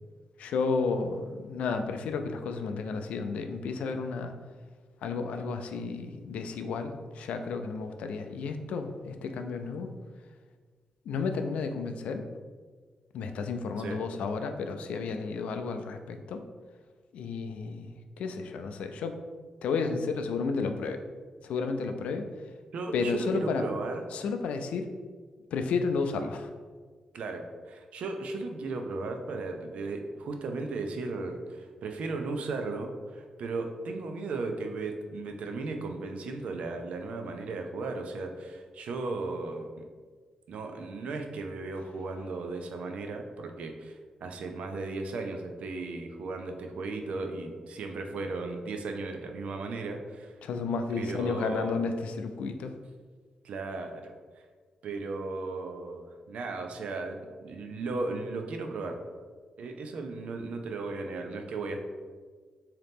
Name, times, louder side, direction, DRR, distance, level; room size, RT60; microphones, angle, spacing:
voice 1, 0.4-4.3 5.0-9.9 11.1-12.3 13.1-16.4 17.1-19.1 19.6-21.0 21.4-22.3 22.9-23.6 24.1-24.9 25.5-26.5 50.4-52.8, left 4 dB, 85° left, 6 dB, 0.3 m, -32 dB
voice 2, 22.7-24.0 27.1-39.8 40.5-50.4 51.0-51.8 53.4-54.1 54.8-59.0 59.6-61.8, right 3 dB, 75° right, 4 dB, 0.5 m, -36 dB
3.7 x 2.8 x 3.5 m, 1.5 s
cardioid pair, 95°, 2 cm